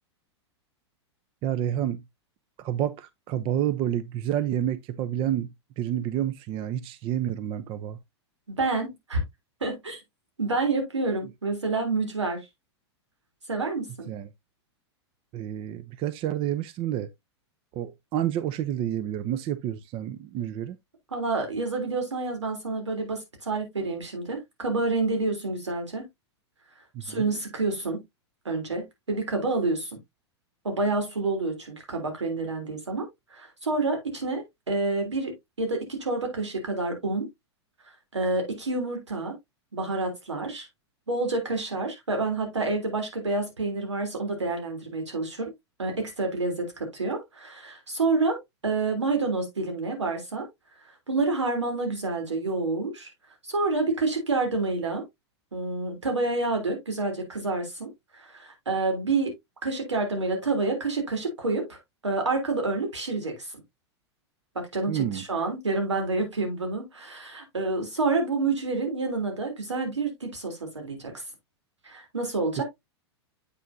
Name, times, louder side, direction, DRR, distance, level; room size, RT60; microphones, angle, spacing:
voice 1, 1.4-2.0 2.6-8.0 14.1-14.3 15.3-17.1 17.7-20.8 27.1-27.3 64.9-65.2, right 11 dB, 40° right, 0.6 m, -29 dB
voice 2, 8.5-9.2 9.6-10.0 10.4-12.4 13.5-14.1 21.1-26.0 27.0-28.0 28.5-30.0 30.6-33.1 33.3-37.3 38.1-39.3 39.7-40.7 41.1-45.5 45.8-48.4 48.6-50.5 51.1-53.1 53.4-55.0 55.5-59.3 59.6-63.5 64.6-71.1 71.8-72.6, right 3 dB, 90° right, 3.5 m, -28 dB
8.2 x 5.8 x 2.7 m
hypercardioid pair, 105°, 15 cm